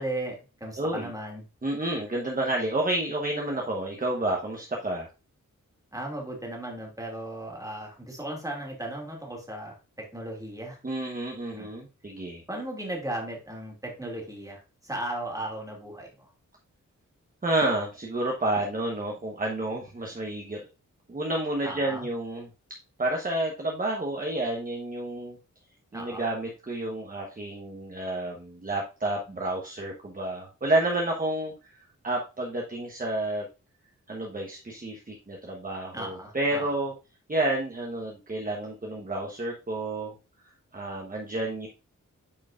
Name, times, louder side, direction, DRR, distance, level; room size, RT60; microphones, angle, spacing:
voice 1, 0.0-1.4 5.9-10.8 11.5-11.7 12.5-16.3 21.6-22.1 25.9-26.3 35.9-36.7, right 1 dB, 10° right, 0 dB, 2.4 m, -36 dB
voice 2, 0.8-1.1 1.6-5.1 10.8-12.4 17.4-20.6 21.1-22.5 23.0-25.4 25.9-31.5 32.0-33.5 34.1-36.9 37.3-40.1 40.7-41.7, right 1 dB, 30° right, 0 dB, 1.1 m, -30 dB
8.7 x 4.6 x 2.5 m, 0.30 s
wide cardioid pair, 95°, 31 cm